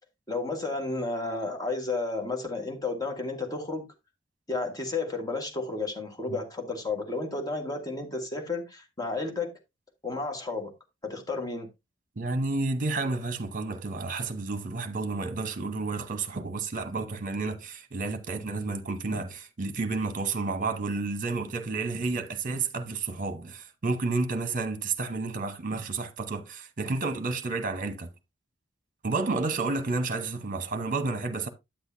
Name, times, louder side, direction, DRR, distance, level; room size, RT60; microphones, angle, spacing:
voice 1, 0.3-3.9 4.5-9.5 10.0-10.7 11.0-11.7, left 3 dB, 20° left, 1.5 m, -32 dB
voice 2, 12.2-28.1 29.0-31.5, right 3 dB, 45° right, 1.0 m, -31 dB
8.7 x 8.0 x 2.7 m
head